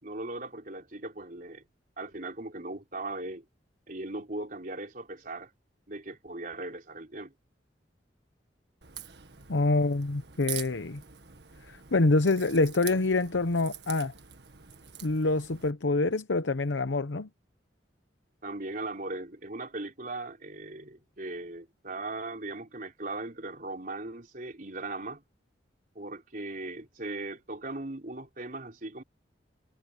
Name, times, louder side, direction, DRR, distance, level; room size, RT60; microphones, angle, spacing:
voice 1, 0.0-1.6 2.0-3.4 3.9-5.5 5.9-7.3 18.4-25.2 26.0-29.0, right 2 dB, 50° right, 3.9 m, -38 dB
Crack, 8.8-15.7, right 11 dB, 65° right, 1.9 m, -44 dB
voice 2, 9.5-11.0 11.7-14.1 15.0-17.3, left 2 dB, 85° left, 0.9 m, -26 dB
head